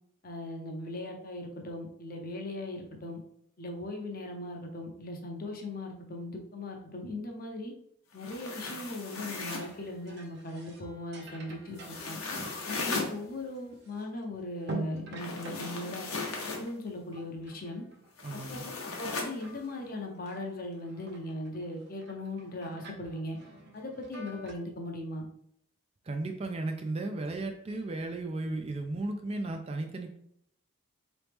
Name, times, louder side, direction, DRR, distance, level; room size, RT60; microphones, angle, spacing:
voice 1, 0.2-3.2 3.6-7.7 8.1-12.2 12.6-16.1 16.4-17.8 18.3-23.4 23.7-25.2, left 1 dB, 40° left, 2 dB, 0.6 m, -39 dB
sound 1, 8.1-9.8 11.8-13.1 15.2-16.7 18.2-19.3, left 3 dB, 85° left, 0.8 m, -37 dB
sound 2, 9.3-14.2 14.6-18.1 18.4-19.1 19.4-24.5, right 1 dB, 50° right, 0.7 m, -47 dB
voice 2, 18.2-18.6 26.1-30.2, right 2 dB, 30° right, 5 dB, 0.3 m, -35 dB
3.9 x 3.0 x 3.4 m, 0.71 s
head